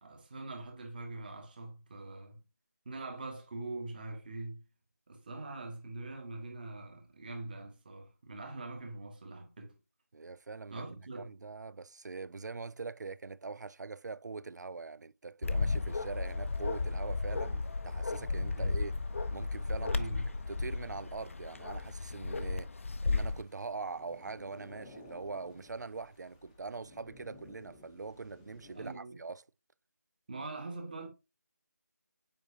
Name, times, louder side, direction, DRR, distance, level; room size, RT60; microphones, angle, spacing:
voice 1, 0.0-2.4 2.8-4.6 5.1-9.7 10.7-11.3 18.5-18.8 19.9-20.3 28.7-29.2 30.3-31.1, right 2 dB, 30° right, 1.6 m, -43 dB
voice 2, 10.1-18.9 19.3-20.0 20.5-22.7 23.0-29.4, right 4 dB, 80° right, 0.4 m, -43 dB
Bark, 15.4-23.4, left 3 dB, 50° left, 0.5 m, -34 dB
sound 1, 15.9-29.0, left 2 dB, 10° left, 0.7 m, -58 dB
7.7 x 5.0 x 2.7 m
figure-of-eight pair, 170°, 9 cm